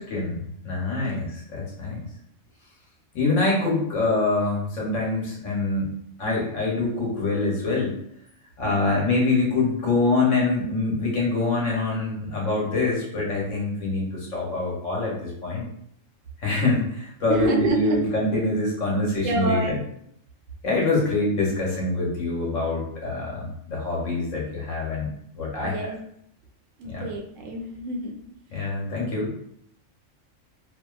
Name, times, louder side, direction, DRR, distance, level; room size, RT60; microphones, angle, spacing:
voice 1, 0.1-2.0 3.1-5.9 6.2-7.9 8.6-15.7 16.4-19.8 20.6-25.8 26.8-27.0 28.5-29.3, left 3 dB, 70° left, -3 dB, 1.2 m, -25 dB
voice 2, 8.6-9.0 17.3-18.0 19.2-19.8 25.6-26.0 26.8-28.1, right 2 dB, 80° right, 1 dB, 1.0 m, -27 dB
2.7 x 2.4 x 2.3 m, 0.71 s
omnidirectional pair, 1.4 m